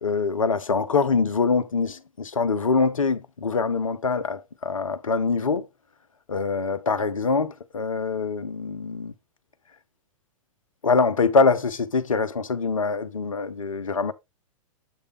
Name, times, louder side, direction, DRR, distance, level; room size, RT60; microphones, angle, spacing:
voice 1, 0.0-5.7 6.3-9.1 10.8-14.1, left 4 dB, 75° left, 0.8 m, -24 dB
7.9 x 3.3 x 4.8 m
figure-of-eight pair, 105°, 17 cm